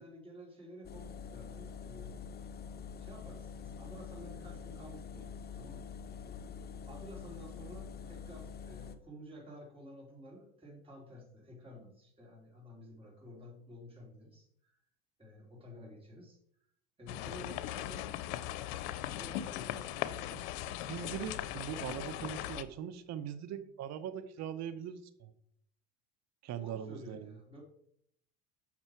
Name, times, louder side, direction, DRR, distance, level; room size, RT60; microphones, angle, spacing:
voice 1, 0.0-2.3 3.0-5.9 6.2-6.3 6.9-14.7 15.2-16.4 17.0-18.1 19.2-19.9 26.6-27.6, equal, 15° right, -2 dB, 3.3 m, -52 dB
sound 1, 0.8-9.0, left 6 dB, 30° left, 0.8 m, -46 dB
sound 2, 17.1-22.6, left 12 dB, 75° left, 0.7 m, -39 dB
voice 2, 20.9-25.3 26.4-27.4, right 9 dB, 50° right, 12 dB, 0.8 m, -41 dB
6.8 x 5.9 x 4.5 m, 0.71 s
supercardioid pair, 90°, 34 cm